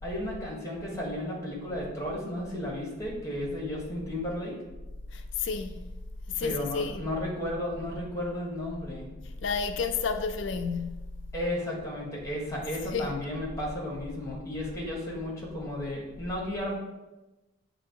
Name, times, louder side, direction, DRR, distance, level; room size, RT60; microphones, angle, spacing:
voice 1, 0.0-4.6 6.4-9.1 11.3-16.8, left 1 dB, 15° left, 1.6 m, -33 dB
voice 2, 5.1-5.8 6.3-7.1 9.4-11.2 12.9-13.2, left 5 dB, 65° left, 0.4 m, -31 dB
7.5 x 2.8 x 4.6 m
head